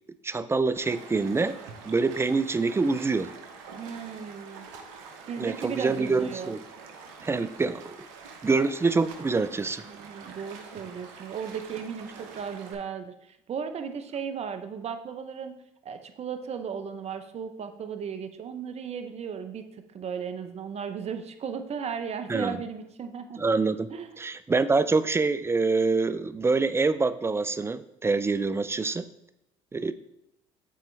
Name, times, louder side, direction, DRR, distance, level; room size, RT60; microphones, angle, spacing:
voice 1, 0.2-1.6 1.8-3.3 5.4-6.6 7.2-7.9 8.4-9.8 22.3-22.6 23.4-23.9 24.2-29.0 29.7-29.9, right 3 dB, 15° right, 14 dB, 0.4 m, -25 dB
Stream, 0.7-12.7, right 5 dB, 80° right, 0.9 m, -46 dB
voice 2, 3.7-4.7 5.3-6.5 9.8-15.6 15.8-19.6 19.9-23.4 23.9-24.1, right 7 dB, 40° right, 8 dB, 0.8 m, -36 dB
8.4 x 4.4 x 3.3 m, 0.86 s
hypercardioid pair, 70°, 16 cm